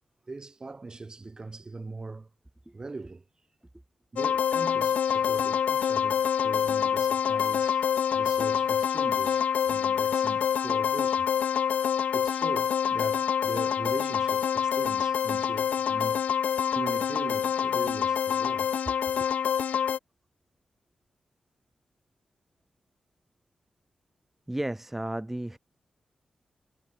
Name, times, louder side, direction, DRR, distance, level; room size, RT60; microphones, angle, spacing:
voice 1, 0.3-2.3 2.7-3.2 4.1-7.8 8.1-11.3 12.1-16.4 16.7-19.3, right 3 dB, 30° right, 0.7 m, -40 dB
sound 1, 4.2-20.0, left 8 dB, 80° left, 0.3 m, -26 dB
voice 2, 24.5-25.6, right 1 dB, 10° right, 0.3 m, -33 dB
cardioid pair, 80°, 2 cm